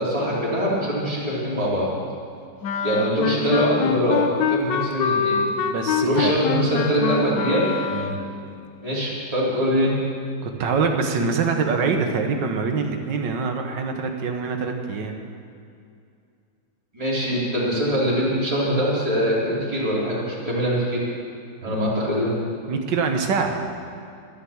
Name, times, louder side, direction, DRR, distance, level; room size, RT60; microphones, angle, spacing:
voice 1, 0.0-1.9 2.8-5.4 6.0-7.7 8.8-9.9 16.9-21.0 21.6-22.3, equal, 20° right, -7 dB, 3.3 m, -23 dB
Wind instrument woodwind instrument, 2.6-8.4, left 6 dB, 85° left, 1.4 m, -25 dB
voice 2, 5.6-6.4 7.9-8.2 10.4-15.1 21.6-21.9 22.7-23.6, right 5 dB, 85° right, 4 dB, 1.9 m, -25 dB
12.0 x 11.5 x 7.2 m, 2.4 s
omnidirectional pair, 1.9 m